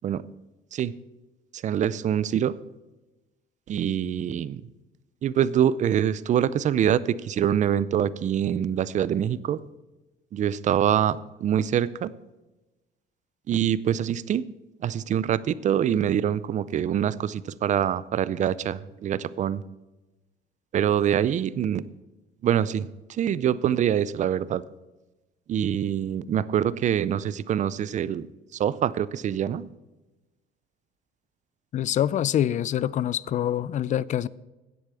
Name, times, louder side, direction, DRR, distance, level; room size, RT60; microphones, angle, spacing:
voice 1, 1.6-2.5 3.7-4.6 5.2-9.6 10.3-12.1 13.5-14.4 14.8-19.6 20.7-21.8 22.4-24.6 25.5-28.3 28.6-29.7, right 9 dB, 45° right, 0.5 m, -25 dB
voice 2, 31.7-34.3, left 11 dB, 45° left, 0.4 m, -25 dB
10.0 x 8.1 x 6.9 m
cardioid pair, 110°, 17 cm